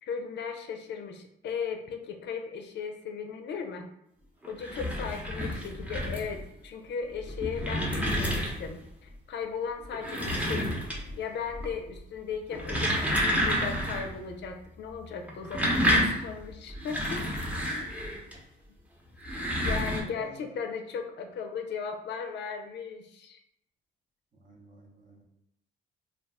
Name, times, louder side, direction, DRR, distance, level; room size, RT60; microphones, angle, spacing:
voice 1, 0.0-3.9 4.5-10.7 11.2-17.4 19.6-23.4, left 6 dB, 60° left, 5 dB, 0.4 m, -37 dB
sound 1, 4.4-6.4 7.1-8.8 9.8-11.2 11.5-12.0 12.4-14.1 14.4-14.5 15.2-18.3 19.1-20.0, equal, 5° right, 0.7 m, -29 dB
voice 2, 24.4-25.2, right 2 dB, 40° right, 0 dB, 0.8 m, -51 dB
2.3 x 2.2 x 3.4 m, 0.78 s
cardioid pair, 90°, 20 cm